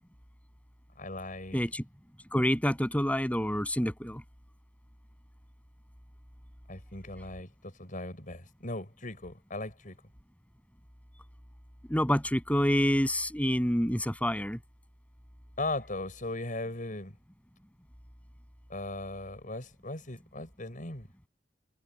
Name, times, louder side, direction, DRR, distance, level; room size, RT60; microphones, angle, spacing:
voice 1, 1.0-1.6 6.7-10.0 15.6-17.1 18.7-21.1, left 2 dB, 45° left, 6.6 m, -38 dB
voice 2, 1.5-1.8 2.3-4.2 11.9-14.6, equal, 10° left, 7.5 m, -27 dB
head